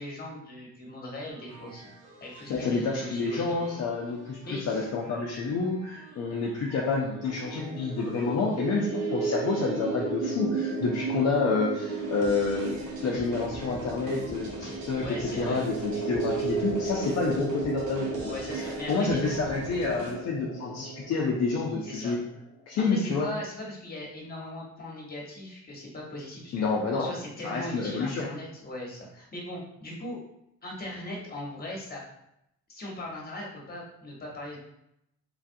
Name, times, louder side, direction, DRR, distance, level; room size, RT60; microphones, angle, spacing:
voice 1, 0.0-1.9 2.2-3.6 4.4-4.9 15.0-15.6 18.3-19.2 21.8-22.2 22.9-26.7 26.9-30.2 30.6-32.0 32.7-34.6, left 1 dB, 30° left, -2 dB, 1.1 m, -39 dB
side stepping, 1.3-20.1, right 1 dB, 85° right, 0.8 m, -46 dB
voice 2, 2.5-12.7 13.0-18.3 18.9-22.2 22.7-23.3 26.5-27.1 27.4-28.3, left 4 dB, 55° left, -3 dB, 0.5 m, -29 dB
sound 1, 6.7-22.3, right 4 dB, 45° right, 0.8 m, -34 dB
3.1 x 2.4 x 2.6 m, 0.78 s
cardioid pair, 90°, 30 cm